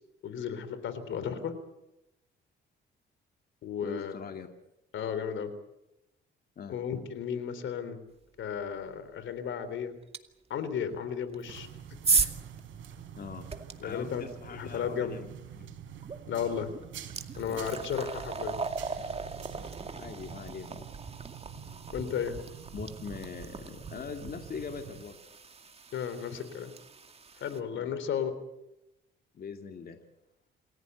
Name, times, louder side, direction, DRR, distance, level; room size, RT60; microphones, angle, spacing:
voice 1, 0.2-1.5 3.6-4.1 4.9-5.5 6.7-8.0 8.4-9.9 10.5-11.7 12.1-12.3 13.8-14.2 14.5-15.2 16.3-16.7 17.4-18.6 21.9-22.4 25.9-26.7 27.4-28.3, left 7 dB, 75° left, 12 dB, 3.6 m, -34 dB
voice 2, 3.8-4.5 6.6-6.8 13.2-13.5 13.8-15.8 17.4-17.8 19.9-20.9 22.7-25.2 27.7-27.9 29.3-30.0, left 6 dB, 50° left, 4 dB, 2.5 m, -42 dB
sound 1, 10.1-10.2 11.3-13.7 16.0-16.2 16.6-27.6, right 4 dB, 30° right, 2.3 m, -36 dB
sound 2, 11.5-25.0, right 9 dB, 75° right, 4.6 m, -47 dB
28.0 x 15.5 x 8.1 m, 0.88 s
cardioid pair, 90°, 20 cm